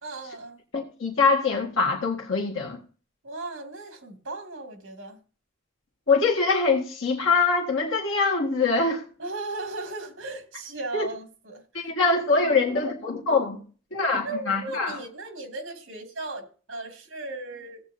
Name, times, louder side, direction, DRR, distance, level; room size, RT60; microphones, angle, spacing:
voice 1, 0.0-0.6 3.2-5.2 9.2-11.9 14.2-17.8, right 2 dB, 65° right, 2.3 m, -36 dB
voice 2, 0.7-2.8 6.1-9.0 10.9-11.1 11.7-13.6 13.9-15.0, left 4 dB, 75° left, 1.8 m, -23 dB
16.5 x 8.3 x 2.7 m
head